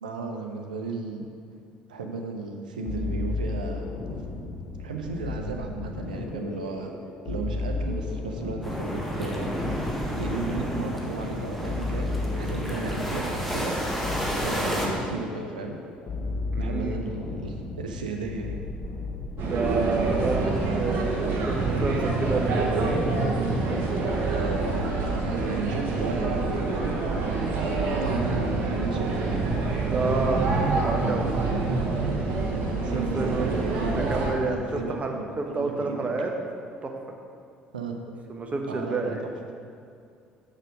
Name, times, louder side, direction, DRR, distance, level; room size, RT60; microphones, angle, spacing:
voice 1, 0.0-1.3 1.9-3.9 4.8-6.9 7.2-9.6 10.2-13.7 14.0-14.1 14.4-15.8 16.6-18.6 24.3-26.9 27.6-29.1 31.3-36.1 37.7-38.0 38.7-39.3, right 4 dB, 85° right, 3 dB, 0.6 m, -35 dB
sound 1, 2.8-20.5, left 3 dB, 50° left, 1.4 m, -34 dB
sound 2, 8.6-14.9, equal, 5° left, 1.6 m, -31 dB
voice 2, 16.5-17.0 19.4-21.1 21.5-22.7 29.8-30.4 30.7-31.3 32.9-36.3 36.8-36.9 38.3-39.2, right 3 dB, 30° right, 3 dB, 1.1 m, -29 dB
sound 3, 19.4-34.3, right 3 dB, 55° right, 1.3 m, -26 dB
6.6 x 6.0 x 5.1 m, 2.4 s
figure-of-eight pair, 55°, 4 cm